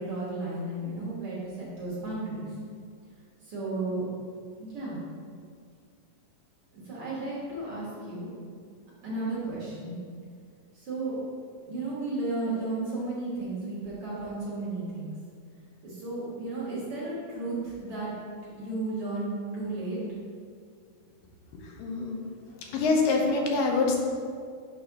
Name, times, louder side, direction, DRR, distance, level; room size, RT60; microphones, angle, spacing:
voice 1, 0.0-2.5 3.4-4.0 4.6-5.0 6.7-8.3 9.0-10.0 10.7-11.2 11.7-15.1 15.8-18.1 18.6-19.3 19.5-20.0, right 2 dB, 50° right, -8 dB, 2.0 m, -33 dB
voice 2, 21.5-22.2 22.7-24.0, left 3 dB, 85° left, 1 dB, 2.4 m, -25 dB
6.2 x 3.3 x 5.8 m, 2.1 s
omnidirectional pair, 3.8 m